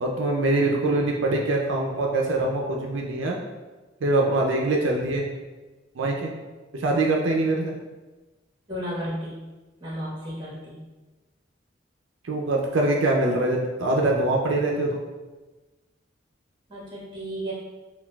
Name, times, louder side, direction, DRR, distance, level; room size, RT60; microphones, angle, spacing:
voice 1, 0.0-3.4 4.0-5.3 5.9-6.3 6.7-7.8 12.2-15.0, right 2 dB, 80° right, 0 dB, 0.4 m, -23 dB
voice 2, 8.7-9.4 9.8-10.8 16.7-17.5, equal, 25° right, -7 dB, 1.2 m, -33 dB
5.8 x 2.3 x 2.2 m, 1.2 s
head